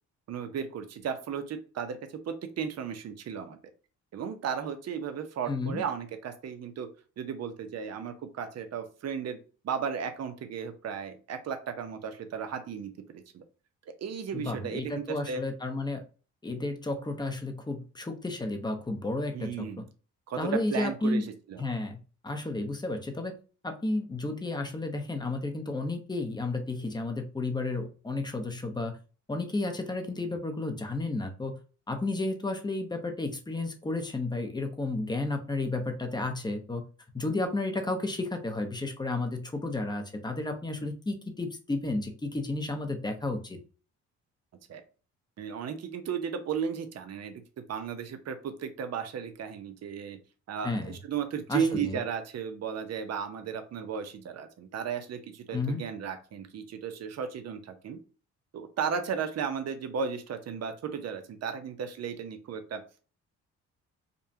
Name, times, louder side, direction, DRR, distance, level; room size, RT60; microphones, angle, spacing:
voice 1, 0.3-2.0 2.3-3.6 4.1-6.9 7.2-9.4 9.6-13.4 14.0-15.4 19.3-19.9 20.3-21.7 44.7-44.8 45.4-47.4 47.7-50.2 50.5-58.0 58.5-62.8, right 7 dB, 55° right, 7 dB, 0.9 m, -35 dB
voice 2, 5.5-5.8 14.3-16.0 16.4-19.7 20.4-21.3 21.6-23.3 23.6-29.0 29.3-31.6 31.9-36.8 37.1-43.6 50.6-51.0 51.5-52.0 55.5-55.8, left 2 dB, 15° left, 5 dB, 0.9 m, -32 dB
5.2 x 2.3 x 2.8 m, 0.36 s
cardioid pair, 90°, 30 cm